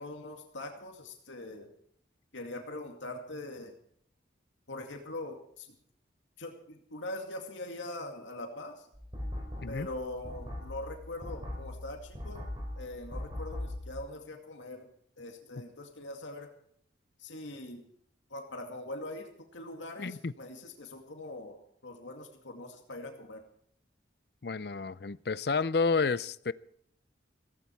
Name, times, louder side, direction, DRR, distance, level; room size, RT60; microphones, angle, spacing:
voice 1, 0.0-1.7 2.3-3.7 4.7-5.7 6.4-8.9 9.7-12.5 12.8-14.9 15.2-16.5 17.2-17.9 18.3-23.4, left 2 dB, 90° left, 2.3 m, -42 dB
sound 1, 8.9-14.0, left 1 dB, 25° right, 5.1 m, -40 dB
voice 2, 20.0-20.3 24.4-26.5, left 4 dB, 55° left, 0.6 m, -30 dB
16.5 x 15.5 x 4.6 m
head